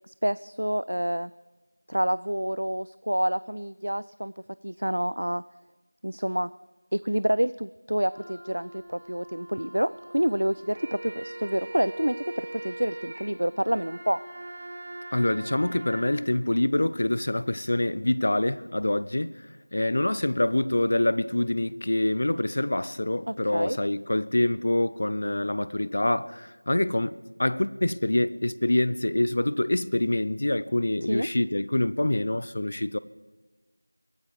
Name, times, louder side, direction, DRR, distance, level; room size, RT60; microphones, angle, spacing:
voice 1, 0.1-1.3 1.9-4.3 4.6-5.4 6.0-6.5 6.9-14.2 23.3-23.8 31.0-31.3, equal, 65° right, 0.4 m, -28 dB
Wind instrument woodwind instrument, 8.0-16.2, equal, 80° left, 5.9 m, -48 dB
sound 1, 10.5-16.1, right 2 dB, 25° right, 1.6 m, -41 dB
voice 2, 15.1-19.3 19.7-27.1 27.4-33.0, left 1 dB, 35° left, 0.5 m, -25 dB
23.0 x 9.3 x 4.8 m
figure-of-eight pair, 175°, 0 cm